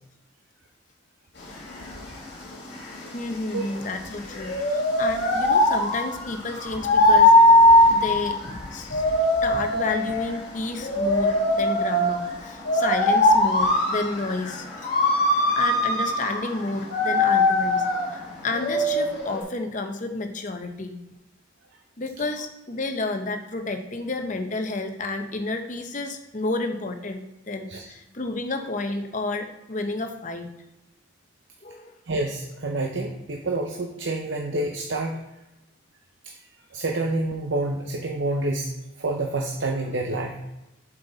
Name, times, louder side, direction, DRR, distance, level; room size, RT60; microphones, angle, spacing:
sound 1, 1.4-19.4, left 1 dB, 55° left, 2.2 m, -21 dB
voice 1, 3.1-7.3 7.8-9.0 9.4-14.9 15.3-21.0 22.0-30.5 31.6-31.9, left 2 dB, 40° left, 5 dB, 0.8 m, -31 dB
voice 2, 32.1-35.2 36.2-36.3 36.7-38.7 39.0-40.4, right 2 dB, 65° right, 1 dB, 0.7 m, -28 dB
7.5 x 5.7 x 4.0 m, 0.96 s
head